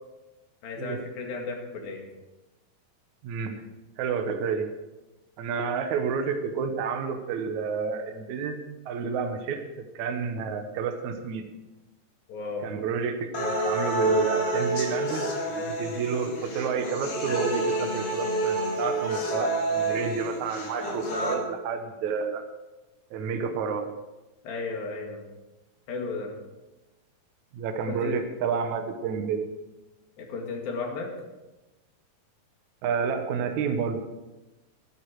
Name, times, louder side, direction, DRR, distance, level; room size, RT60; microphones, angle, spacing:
voice 1, 0.6-2.0 12.3-12.7 24.4-25.3 25.9-26.3 27.9-28.1 30.2-31.1, left 3 dB, 80° left, 1 dB, 4.0 m, -34 dB
voice 2, 3.2-3.6 4.0-4.7 5.4-9.6 10.0-11.4 12.6-15.2 15.5-22.4 23.1-23.9 27.5-29.5 32.8-34.0, right 6 dB, 65° right, 6 dB, 2.1 m, -30 dB
sound 1, 13.3-21.3, right 2 dB, 45° left, 3.2 m, -28 dB
14.5 x 12.0 x 4.6 m, 1.1 s
omnidirectional pair, 4.1 m